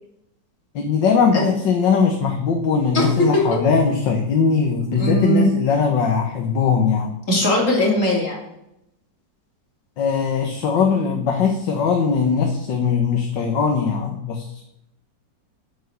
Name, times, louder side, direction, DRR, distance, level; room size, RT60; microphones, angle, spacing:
voice 1, 0.8-7.1 10.0-14.5, left 5 dB, 85° left, 3 dB, 1.9 m, -20 dB
voice 2, 2.9-3.4 5.0-5.5 7.3-8.4, left 1 dB, 45° left, -1 dB, 3.4 m, -19 dB
9.3 x 8.6 x 6.6 m, 0.83 s
omnidirectional pair, 1.9 m